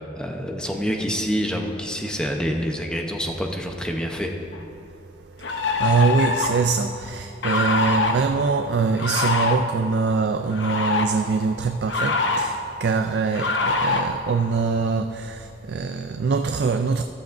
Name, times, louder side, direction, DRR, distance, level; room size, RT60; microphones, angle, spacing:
voice 1, 0.2-4.3, equal, 5° left, 2 dB, 0.8 m, -27 dB
sound 1, 4.5-4.6 5.4-6.6 7.4-8.1 9.0-9.6 10.5-11.0 11.9-12.5 13.3-14.0, left 3 dB, 85° left, 0.8 m, -23 dB
voice 2, 5.4-17.0, right 4 dB, 65° right, 7 dB, 0.4 m, -23 dB
13.5 x 13.0 x 2.6 m, 2.7 s
head